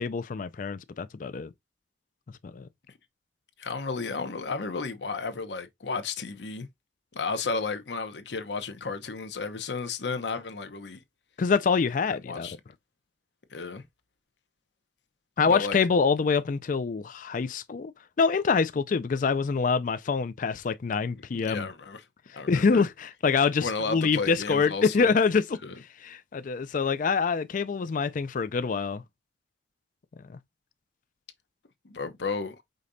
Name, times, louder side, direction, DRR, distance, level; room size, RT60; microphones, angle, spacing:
voice 1, 0.0-1.5 2.5-2.7 11.4-12.5 15.4-17.9 18.2-21.7 22.5-25.6 26.0-29.0, left 5 dB, 45° left, 0.4 m, -25 dB
voice 2, 3.6-6.7 7.1-11.0 12.3-12.6 13.5-13.8 15.4-15.8 21.1-22.0 22.3-22.8 23.6-25.1 25.6-25.8 31.8-32.6, left 4 dB, 80° left, 0.9 m, -33 dB
5.2 x 3.9 x 2.6 m
head